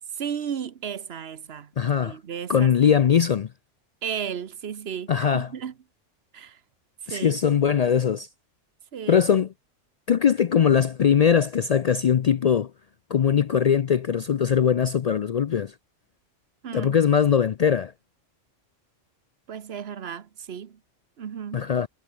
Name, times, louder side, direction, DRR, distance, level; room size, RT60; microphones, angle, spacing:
voice 1, 0.2-1.7 2.0-2.7 4.0-5.7 6.3-6.6 7.0-7.4 8.9-9.2 16.6-17.0 19.5-20.8 21.2-21.7, right 8 dB, 60° right, 1.2 m, -34 dB
voice 2, 1.8-2.2 2.5-3.5 5.1-5.5 7.1-8.3 9.1-9.5 10.1-12.7 13.1-15.7 16.7-17.9 21.5-21.9, left 8 dB, 75° left, 0.3 m, -21 dB
omnidirectional pair, 1.3 m